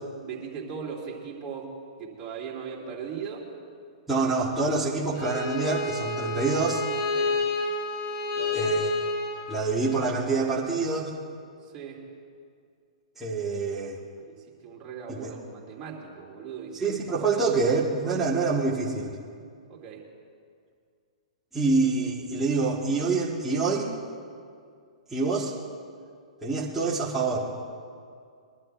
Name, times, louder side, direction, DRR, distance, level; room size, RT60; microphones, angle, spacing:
voice 1, 0.2-1.7 2.0-3.5 7.1-7.4 8.3-8.7 11.6-12.0 14.2-16.8 18.0-18.2 19.7-20.1, right 6 dB, 30° right, -2 dB, 2.9 m, -39 dB
voice 2, 4.1-6.8 8.5-8.9 9.5-11.1 13.2-14.0 15.1-15.3 16.7-19.2 21.5-23.9 25.1-25.5 26.4-27.5, right 3 dB, 5° right, -9 dB, 1.9 m, -26 dB
Bowed string instrument, 5.1-10.1, left 3 dB, 45° left, 1.5 m, -30 dB
22.5 x 11.5 x 3.4 m, 2.3 s
hypercardioid pair, 125°, 4 cm